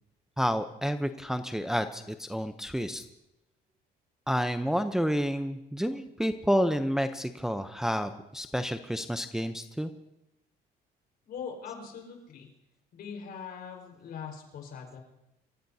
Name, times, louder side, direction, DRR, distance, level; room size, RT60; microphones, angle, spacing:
voice 1, 0.4-3.0 4.3-9.9, equal, 5° right, 8 dB, 0.7 m, -29 dB
voice 2, 11.2-12.5 12.9-15.0, left 6 dB, 65° left, 2 dB, 4.7 m, -41 dB
26.5 x 15.0 x 2.8 m, 0.88 s
cardioid pair, 110°, 17 cm